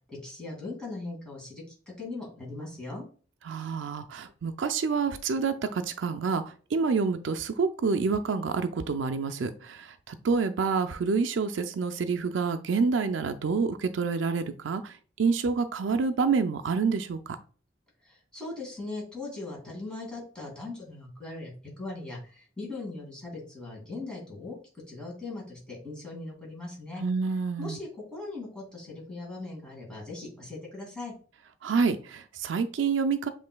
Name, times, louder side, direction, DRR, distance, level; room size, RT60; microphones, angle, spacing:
voice 1, 0.1-1.6 2.0-3.0 18.0-24.6 24.9-27.0 27.6-31.1, left 2 dB, 5° left, -4 dB, 2.3 m, -39 dB
voice 2, 3.5-6.4 6.7-17.4 27.0-27.8 31.6-33.3, right 5 dB, 85° right, 8 dB, 0.4 m, -28 dB
7.4 x 3.2 x 2.2 m, 0.40 s
head